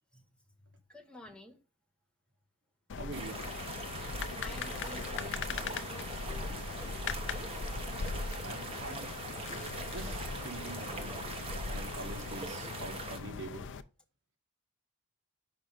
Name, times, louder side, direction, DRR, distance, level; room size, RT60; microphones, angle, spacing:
voice 1, 0.9-1.6 3.0-3.1 3.8-6.5, left 1 dB, 5° left, 1.0 m, -51 dB
sound 1, 2.9-13.8, left 4 dB, 55° left, 0.5 m, -39 dB
voice 2, 3.0-3.5 8.4-9.1 9.4-11.2 11.7-13.7, right 2 dB, 55° right, 1.4 m, -45 dB
sound 2, 3.1-13.2, right 3 dB, 25° right, 1.1 m, -43 dB
sound 3, 5.6-12.9, right 5 dB, 70° right, 0.8 m, -54 dB
5.8 x 5.3 x 5.2 m
head